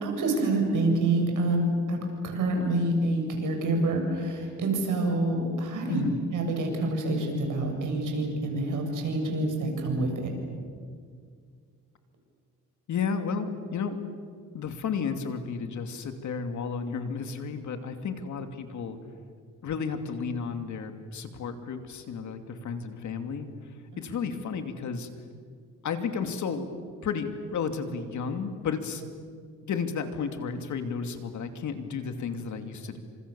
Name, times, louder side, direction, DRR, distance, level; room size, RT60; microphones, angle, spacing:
voice 1, 0.0-6.0 6.3-10.1 24.1-24.2, right 2 dB, 70° right, 3 dB, 7.5 m, -27 dB
voice 2, 12.9-14.0 14.5-19.0 19.6-23.5 24.0-25.1 25.8-26.7 27.0-29.0 29.6-33.0, left 6 dB, 60° left, 7 dB, 2.8 m, -32 dB
29.5 x 27.0 x 7.1 m, 2.1 s
cardioid pair, 110°, 32 cm